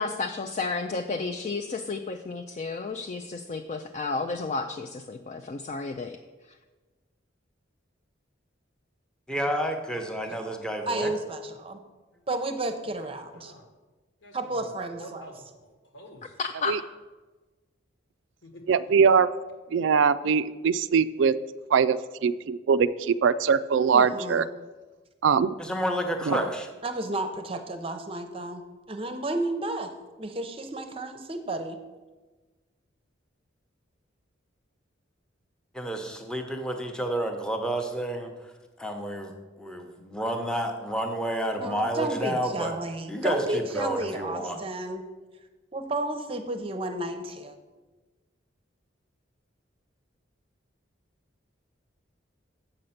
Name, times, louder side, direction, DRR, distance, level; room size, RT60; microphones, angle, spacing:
voice 1, 0.0-6.2 16.4-16.8, left 4 dB, 35° left, 6 dB, 0.4 m, -32 dB
voice 2, 9.3-11.1 25.6-26.7 35.7-38.5 38.8-42.7 43.1-44.6, right 1 dB, 5° left, 4 dB, 0.8 m, -30 dB
voice 3, 10.9-11.8 12.3-13.5 14.3-15.2 23.9-24.4 26.8-28.6 28.9-29.9 30.2-31.8 41.6-45.0 45.7-47.6, right 2 dB, 30° right, 7 dB, 0.7 m, -32 dB
voice 4, 13.0-13.7 14.2-14.7 15.0-16.4 18.4-18.8, equal, 75° left, 3 dB, 1.6 m, -48 dB
voice 5, 18.7-19.3 19.7-21.3 21.7-22.0 22.2-24.4 25.2-25.5 26.3-26.4, right 6 dB, 70° right, 14 dB, 0.3 m, -22 dB
7.8 x 6.5 x 5.7 m, 1.2 s
head